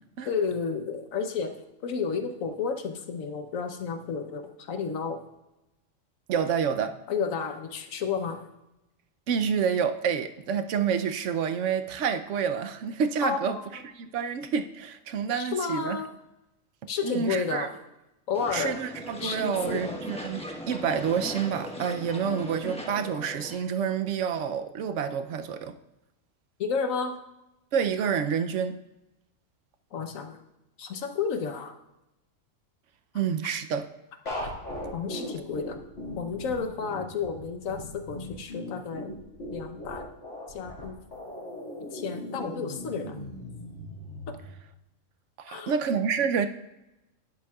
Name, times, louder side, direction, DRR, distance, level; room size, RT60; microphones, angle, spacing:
voice 1, 0.2-1.6 1.8-5.2 7.1-8.5 13.2-13.8 15.4-16.1 16.9-17.8 18.3-18.7 19.2-19.9 26.6-27.2 29.9-30.4 30.8-31.8 34.4-34.5 34.9-35.8 36.1-39.1 39.5-40.1 40.5-41.0 41.9-43.2 44.3-44.4 45.5-45.8, left 5 dB, 80° left, 1.3 m, -31 dB
voice 2, 6.3-6.9 9.3-13.6 13.9-16.0 17.0-17.7 18.5-25.8 27.7-28.8 33.1-33.9 45.4-46.5, right 7 dB, 70° right, 1.0 m, -28 dB
sound 1, 18.3-23.6, left 1 dB, 5° left, 1.0 m, -39 dB
sound 2, 34.3-44.5, left 1 dB, 60° left, 2.6 m, -38 dB
11.5 x 10.0 x 2.4 m
omnidirectional pair, 1.4 m